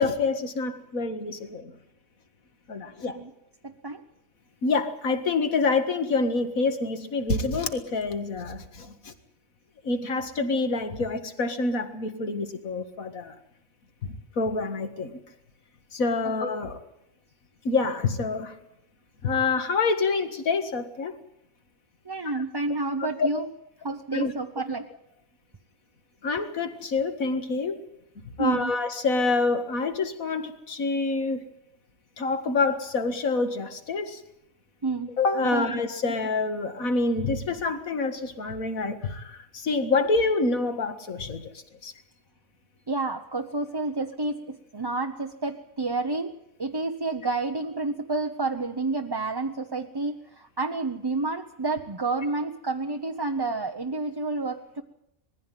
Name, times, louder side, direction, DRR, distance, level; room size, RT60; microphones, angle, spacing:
voice 1, 0.0-1.7 2.7-3.2 4.6-8.9 9.8-13.3 14.4-15.2 15.9-16.8 17.6-18.5 19.2-21.1 23.0-23.3 24.1-24.3 26.2-27.8 28.4-31.5 32.2-34.2 35.2-41.5 41.8-41.9, left 3 dB, 75° left, 8 dB, 2.2 m, -27 dB
voice 2, 3.6-4.0 16.2-16.3 22.1-23.5 23.8-24.9 28.4-28.7 34.8-35.1 35.5-35.8 42.9-54.8, right 3 dB, 20° right, 4 dB, 0.7 m, -30 dB
21.0 x 15.0 x 9.3 m, 0.82 s
omnidirectional pair, 1.5 m